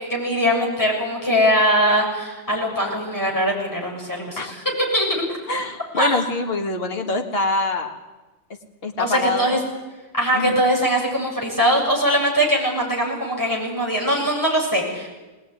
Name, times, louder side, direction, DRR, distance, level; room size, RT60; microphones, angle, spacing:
voice 1, 0.1-4.6 4.9-5.4 5.9-6.1 9.0-9.6 10.1-15.2, equal, 15° left, -2 dB, 7.2 m, -21 dB
voice 2, 5.5-8.0 8.8-9.6 10.3-10.6, left 2 dB, 55° left, 3 dB, 2.0 m, -24 dB
21.5 x 19.5 x 9.7 m, 1.2 s
omnidirectional pair, 1.2 m